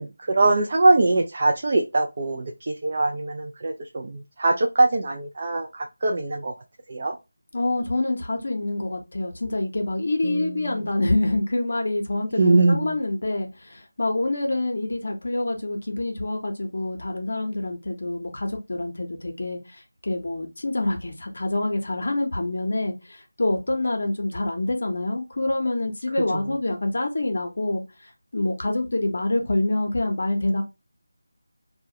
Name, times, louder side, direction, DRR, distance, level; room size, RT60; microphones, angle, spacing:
voice 1, 0.0-6.5 6.9-7.2 10.2-10.8 12.4-12.9, right 2 dB, 40° right, 0.3 m, -22 dB
voice 2, 7.5-27.8 28.3-30.6, left 2 dB, 60° left, 0.6 m, -26 dB
2.3 x 2.1 x 2.7 m
figure-of-eight pair, 165°, 0 cm